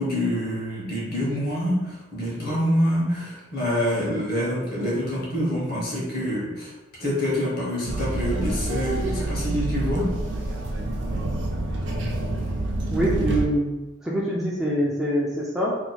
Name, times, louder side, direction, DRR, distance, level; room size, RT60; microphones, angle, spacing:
voice 1, 0.0-6.7 7.0-10.1, equal, 50° left, -5 dB, 1.1 m, -26 dB
sound 1, 7.9-13.5, right 2 dB, 60° right, 0.5 m, -27 dB
voice 2, 12.9-13.7 14.0-15.8, equal, ahead, -6 dB, 0.4 m, -24 dB
2.9 x 2.3 x 4.1 m, 1.1 s
head